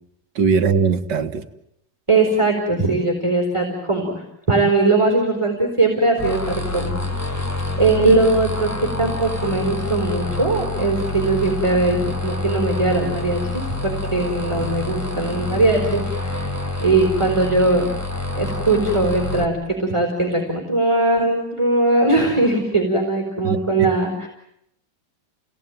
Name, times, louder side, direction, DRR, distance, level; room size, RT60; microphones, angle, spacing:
voice 1, 0.4-1.4 23.4-23.6, right 5 dB, 80° right, 8 dB, 1.9 m, -19 dB
voice 2, 2.1-7.5 7.8-12.0 12.2-16.5 16.8-17.8 18.3-24.3, right 2 dB, 15° right, 0 dB, 4.2 m, -20 dB
sound 1, 6.2-19.4, left 2 dB, 10° left, 1.8 m, -27 dB
29.5 x 18.5 x 9.3 m, 0.79 s
omnidirectional pair, 1.8 m